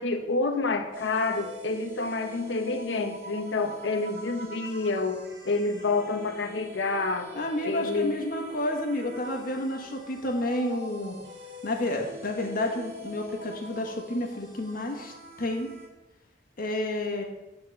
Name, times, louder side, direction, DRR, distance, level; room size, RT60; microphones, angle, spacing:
voice 1, 0.0-7.3 7.6-8.2, left 3 dB, 75° left, 6 dB, 0.9 m, -28 dB
sound 1, 0.9-15.9, equal, 70° right, 2.0 m, -44 dB
voice 2, 7.3-11.2 11.6-15.1 15.4-15.7 16.6-17.2, left 1 dB, 50° left, 2 dB, 1.4 m, -30 dB
9.6 x 4.3 x 6.6 m, 1.0 s
head